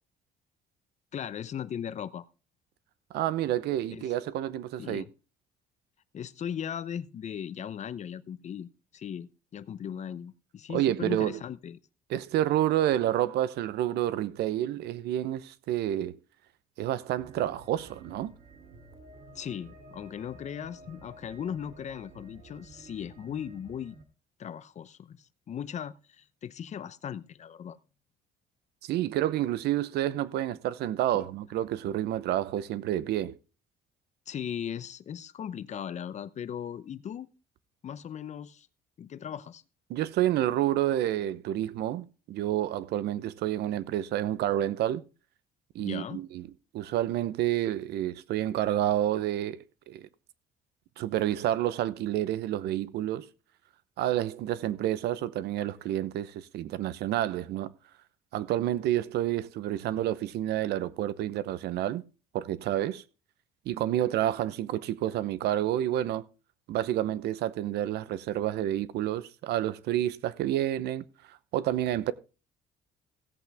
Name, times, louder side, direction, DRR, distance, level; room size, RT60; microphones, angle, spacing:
voice 1, 1.1-2.3 3.9-4.1 4.8-5.1 6.1-11.8 19.3-24.0 24.4-27.8 31.1-31.3 34.3-37.3 37.8-38.7 39.0-39.6 45.8-46.2, left 8 dB, 45° left, 0.7 m, -38 dB
voice 2, 3.1-5.0 10.7-11.4 12.1-16.2 16.8-18.3 28.8-33.4 39.9-45.0 45.7-46.5 46.7-50.1 51.0-53.3 54.0-57.7 58.3-62.0 62.3-63.0 63.7-66.2 66.7-71.0 71.5-72.1, right 12 dB, 75° right, 0.8 m, -29 dB
sound 1, 17.2-24.0, right 2 dB, 60° right, 3.2 m, -52 dB
16.5 x 8.2 x 3.5 m
cardioid pair, 110°, 17 cm